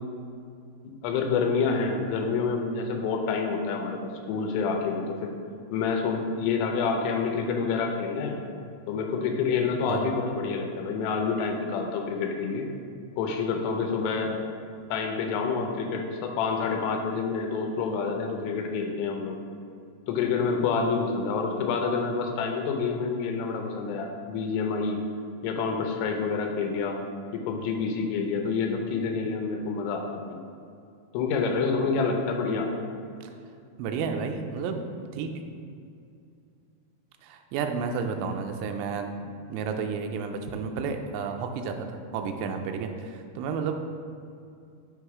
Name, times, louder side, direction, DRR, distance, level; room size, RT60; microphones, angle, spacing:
voice 1, 1.0-5.3 5.7-8.4 8.9-12.7 13.2-14.3 14.9-19.4 20.1-25.0 25.4-27.0 27.3-30.4 31.1-32.7, left 5 dB, 80° left, 3 dB, 2.7 m, -28 dB
voice 2, 33.8-35.3 37.2-43.8, right 5 dB, 85° right, 5 dB, 2.7 m, -32 dB
7.3 x 3.0 x 4.7 m, 2.5 s
omnidirectional pair, 4.9 m